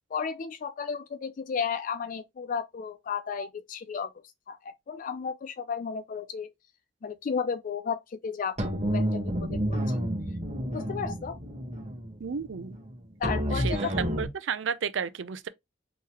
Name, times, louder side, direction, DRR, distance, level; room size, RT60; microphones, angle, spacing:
voice 1, 0.1-4.1 4.5-6.5 7.0-10.0 10.7-11.4 13.2-13.8, left 6 dB, 45° left, 0.3 m, -33 dB
sound 1, 8.6-14.3, equal, 35° right, 1.2 m, -30 dB
voice 2, 12.2-12.8 13.5-13.8 14.2-15.5, right 6 dB, 85° right, 0.5 m, -32 dB
3.8 x 3.0 x 2.8 m
head